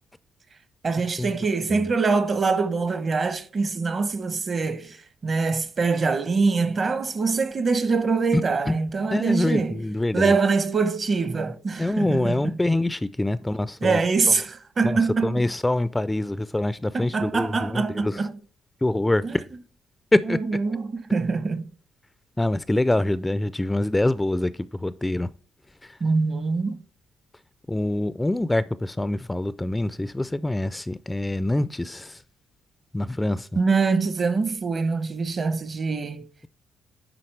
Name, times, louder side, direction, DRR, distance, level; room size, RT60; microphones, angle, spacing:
voice 1, 0.8-9.8 10.1-12.6 13.8-15.4 16.9-18.4 19.2-19.4 20.2-21.7 26.0-26.8 33.6-36.3, right 4 dB, 40° right, 0.8 m, -24 dB
voice 2, 9.1-10.3 11.8-14.0 14.8-18.2 18.8-19.2 20.1-20.4 22.4-25.3 25.8-25.9 27.7-32.2 32.9-33.6, left 1 dB, 10° left, 0.3 m, -25 dB
10.0 x 3.8 x 3.2 m
cardioid pair, 90°, 0 cm